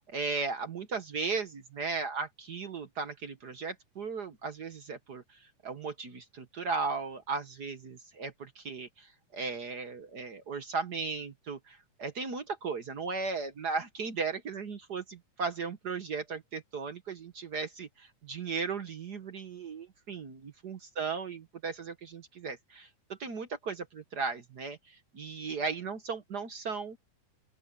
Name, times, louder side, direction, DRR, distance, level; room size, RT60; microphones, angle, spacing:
voice 1, 0.1-27.0, right 4 dB, 60° right, 1.1 m, -36 dB
open air
omnidirectional pair, 3.5 m